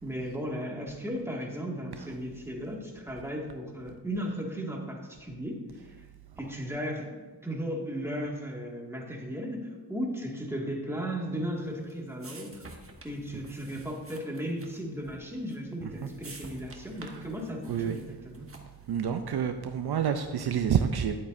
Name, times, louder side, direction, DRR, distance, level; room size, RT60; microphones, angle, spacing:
voice 1, 0.0-5.9 6.4-12.6 13.0-18.5, equal, 5° right, -2 dB, 2.0 m, -36 dB
sound 1, 11.4-18.9, right 2 dB, 30° right, 1.3 m, -51 dB
voice 2, 18.9-21.2, right 8 dB, 65° right, 7 dB, 0.6 m, -28 dB
10.5 x 8.4 x 2.6 m, 1.3 s
cardioid pair, 65°, 42 cm